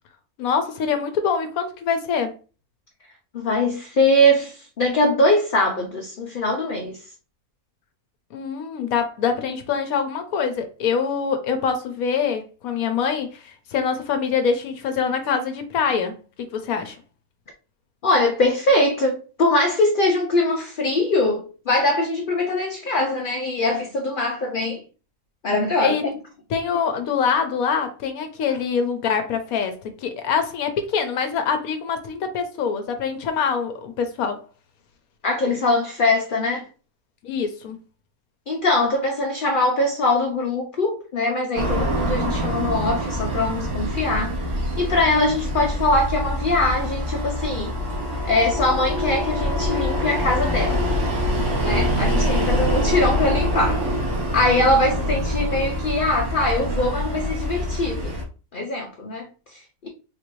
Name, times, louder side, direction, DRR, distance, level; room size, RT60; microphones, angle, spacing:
voice 1, 0.4-2.3 8.3-17.0 25.8-26.0 26.5-34.4 37.2-37.8, left 6 dB, 75° left, 1.0 m, -24 dB
voice 2, 3.3-7.0 18.0-24.8 25.4-26.0 35.2-36.7 38.5-44.4 44.8-47.8 48.2-50.9 51.6-53.8 54.3-58.1 58.5-59.9, left 1 dB, 60° left, 0.5 m, -22 dB
sound 1, 41.6-58.2, equal, 80° right, 1.5 m, -25 dB
sound 2, 46.2-54.5, left 2 dB, 55° right, 1.3 m, -31 dB
3.9 x 2.6 x 3.0 m
omnidirectional pair, 1.5 m